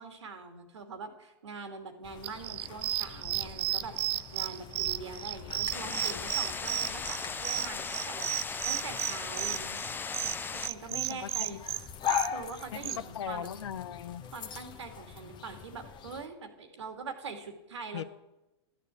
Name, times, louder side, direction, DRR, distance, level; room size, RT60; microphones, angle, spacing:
voice 1, 0.0-9.8 10.5-11.6 12.3-13.5 14.3-18.1, right 4 dB, 85° right, 6 dB, 2.4 m, -43 dB
sound 1, 2.0-16.3, left 9 dB, 30° left, 1.1 m, -41 dB
sound 2, 2.2-13.0, right 14 dB, 65° right, 0.5 m, -33 dB
sound 3, 5.7-10.7, left 5 dB, 15° left, 0.6 m, -37 dB
voice 2, 10.9-11.6 12.7-12.9 13.1-14.2 17.9-18.0, left 9 dB, 80° left, 16 dB, 0.8 m, -39 dB
13.5 x 9.3 x 8.3 m, 0.98 s
hypercardioid pair, 110°, 14 cm